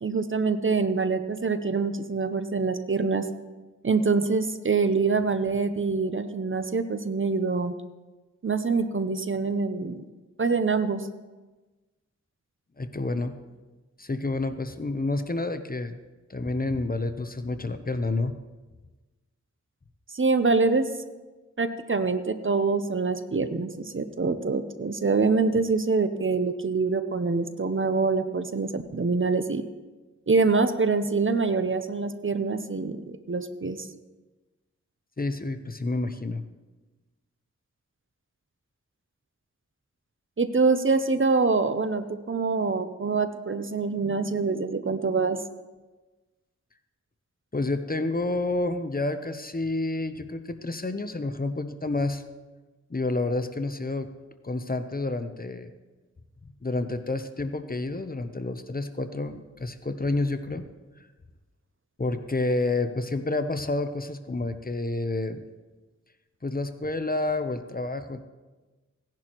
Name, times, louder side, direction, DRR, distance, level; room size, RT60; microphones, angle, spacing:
voice 1, 0.0-3.3 3.8-7.8 8.4-10.0 10.4-11.1 20.1-20.9 21.6-29.6 30.3-33.9 40.4-45.4, right 4 dB, 45° right, 10 dB, 0.7 m, -25 dB
voice 2, 12.8-13.3 14.0-16.0 16.3-18.4 35.2-36.4 47.5-52.2 52.9-54.1 54.4-55.7 56.6-60.6 62.0-65.4 66.4-68.2, left 2 dB, 30° left, 9 dB, 0.7 m, -29 dB
17.0 x 10.5 x 3.0 m, 1.2 s
wide cardioid pair, 75°, 30 cm